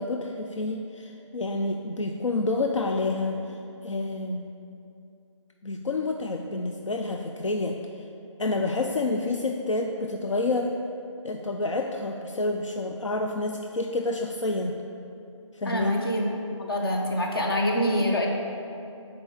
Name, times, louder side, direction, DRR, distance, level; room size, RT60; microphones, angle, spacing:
voice 1, 0.0-4.5 5.6-8.1 8.4-10.7 11.2-14.8 15.5-16.1, left 2 dB, 70° left, 3 dB, 0.5 m, -29 dB
voice 2, 15.7-16.3 16.6-18.3, equal, 45° left, 0 dB, 1.0 m, -25 dB
6.8 x 4.4 x 5.4 m, 2.6 s
figure-of-eight pair, 170°, 17 cm